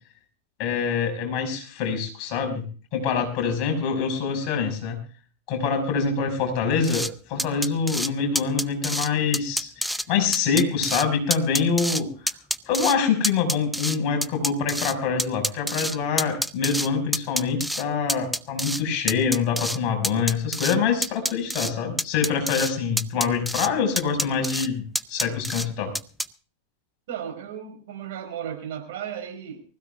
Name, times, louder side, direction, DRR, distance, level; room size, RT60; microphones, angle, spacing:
voice 1, 0.6-2.6 2.9-5.0 5.5-12.1 12.7-24.8 25.1-25.9, left 6 dB, 40° left, 4 dB, 5.8 m, -25 dB
sound 1, 6.8-7.1 7.4-8.1 8.4-9.1 9.3-10.0 10.3-11.0 11.3-12.0 12.3-12.9 13.2-14.9 15.2-16.9 17.1-17.8 18.1-18.8 19.1-19.8 20.0-20.8 21.0-21.7 22.0-22.7 23.0-23.7 24.0-24.7 24.9-25.7 25.9-26.3, equal, ahead, 0.7 m, -27 dB
voice 2, 27.1-29.6, right 9 dB, 55° right, 6 dB, 4.8 m, -35 dB
24.0 x 16.0 x 2.5 m, 0.37 s
figure-of-eight pair, 90°, 0 cm